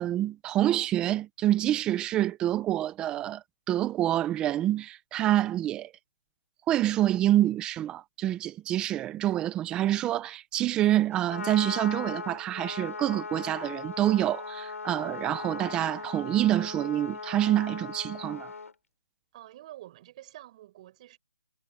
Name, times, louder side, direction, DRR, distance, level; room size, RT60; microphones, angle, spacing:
voice 1, 0.0-5.9 6.7-18.5, right 13 dB, 10° right, 1.1 m, -27 dB
Trumpet, 11.1-18.7, left 4 dB, 85° left, 7.3 m, -38 dB
voice 2, 19.3-21.2, right 14 dB, 30° right, 6.7 m, -48 dB
hypercardioid pair, 165°, 8 cm